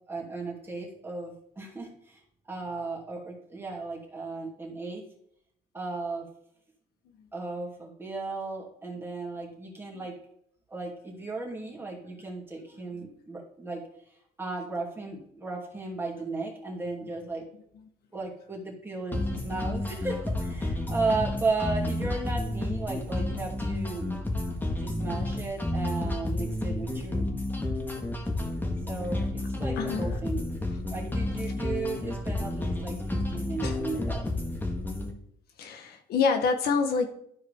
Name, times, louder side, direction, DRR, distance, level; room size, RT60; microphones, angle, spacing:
voice 1, 0.1-2.2 2.5-5.0 5.7-6.3 7.3-10.1 10.7-13.8 14.4-17.4 18.1-24.0 24.8-27.3 28.9-30.5 30.9-34.2, right 3 dB, 15° right, -2 dB, 2.6 m, -35 dB
sound 1, 19.1-35.1, left 1 dB, 10° left, 1.5 m, -31 dB
voice 2, 29.8-30.1 33.6-33.8 35.6-37.1, left 5 dB, 65° left, 5 dB, 1.0 m, -28 dB
13.0 x 4.6 x 3.5 m, 0.68 s
cardioid pair, 110°, 17 cm